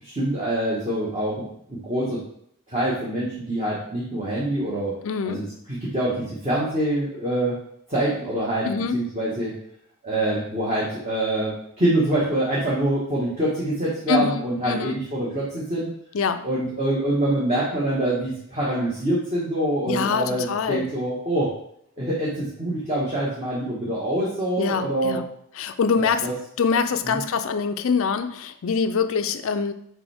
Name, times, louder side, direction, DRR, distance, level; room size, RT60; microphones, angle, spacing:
voice 1, 0.0-2.2 2.7-4.9 5.2-7.5 7.9-8.7 8.9-9.5 10.0-15.9 16.4-21.5 22.0-25.2 26.2-26.3 27.0-27.2, right 1 dB, 30° right, -7 dB, 1.4 m, -25 dB
voice 2, 5.0-5.4 8.6-9.0 14.1-15.0 16.1-16.5 19.9-20.9 24.6-25.2 25.6-26.3 26.6-29.7, left 5 dB, 60° left, 10 dB, 0.4 m, -24 dB
7.0 x 4.5 x 3.5 m, 0.70 s
head